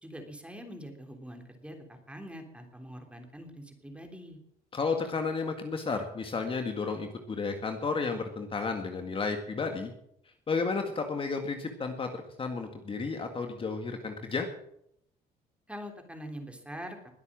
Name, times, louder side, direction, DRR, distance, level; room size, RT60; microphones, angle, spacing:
voice 1, 0.0-4.4 15.7-17.1, equal, 5° right, 4 dB, 3.3 m, -44 dB
voice 2, 4.7-9.9 10.5-14.5, left 4 dB, 30° left, 5 dB, 1.9 m, -32 dB
21.0 x 8.2 x 7.5 m, 0.74 s
cardioid pair, 110°, 17 cm